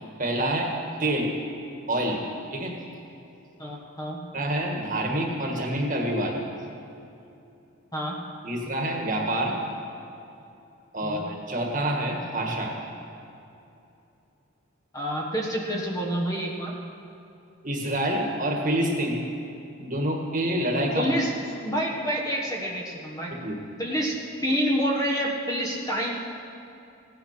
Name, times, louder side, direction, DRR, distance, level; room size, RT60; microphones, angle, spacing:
voice 1, 0.2-0.7 1.0-1.3 1.9-2.2 2.5-2.7 4.3-6.4 8.4-9.5 10.9-12.7 17.6-19.2 19.8-21.1 23.3-23.6, right 1 dB, 40° right, 0 dB, 1.8 m, -27 dB
voice 2, 3.6-4.2 7.9-8.2 11.0-11.2 14.9-16.7 20.9-21.3 21.6-23.3 23.8-24.1 24.4-26.1, equal, 15° left, -1 dB, 1.4 m, -28 dB
16.0 x 9.6 x 6.0 m, 2.7 s
head